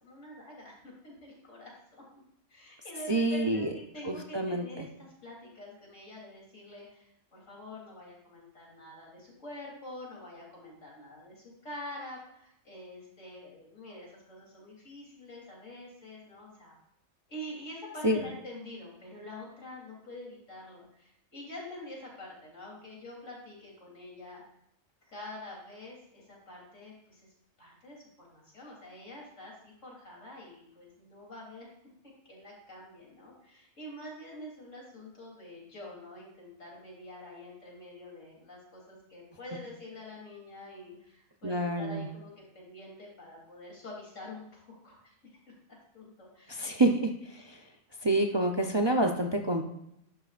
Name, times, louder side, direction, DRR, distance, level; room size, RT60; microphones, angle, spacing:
voice 1, 0.0-2.2 2.5-16.8 17.3-24.4 25.1-27.3 27.6-31.7 32.3-45.2 45.9-46.7, left 1 dB, 85° left, -3 dB, 3.8 m, -46 dB
voice 2, 3.1-3.7 4.0-4.9 18.0-18.2 41.4-42.1 46.5-47.6 48.0-49.6, right 1 dB, 25° right, 3 dB, 0.6 m, -28 dB
11.5 x 11.5 x 2.5 m, 0.77 s
omnidirectional pair, 1.3 m